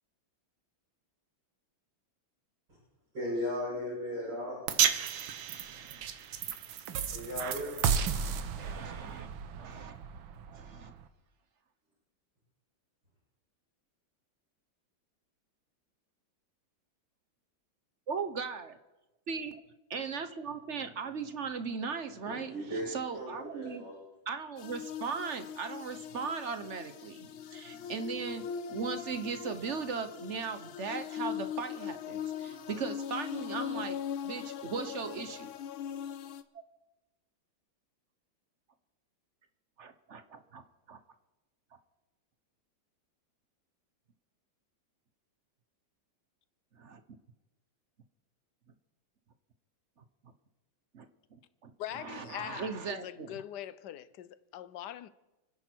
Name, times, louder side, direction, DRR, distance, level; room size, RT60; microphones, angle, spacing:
voice 1, 3.1-4.7 7.1-7.8 22.2-22.9 23.1-24.0, left 1 dB, 60° right, 8.2 m, -36 dB
sound 1, 4.7-11.0, right 8 dB, 80° right, 1.8 m, -33 dB
voice 2, 8.1-9.3 9.6-10.0 10.5-10.9 18.1-18.8 19.3-19.6 19.9-23.8 24.3-34.0 34.2-35.5 39.8-40.6 40.9-41.0 46.8-47.0 50.9-51.0 51.3-53.4, right 5 dB, 45° right, 1.1 m, -38 dB
sound 2, 24.6-36.4, left 8 dB, 85° left, 1.7 m, -40 dB
voice 3, 51.8-55.1, left 12 dB, 70° left, 1.2 m, -42 dB
29.5 x 10.5 x 4.6 m
omnidirectional pair, 2.1 m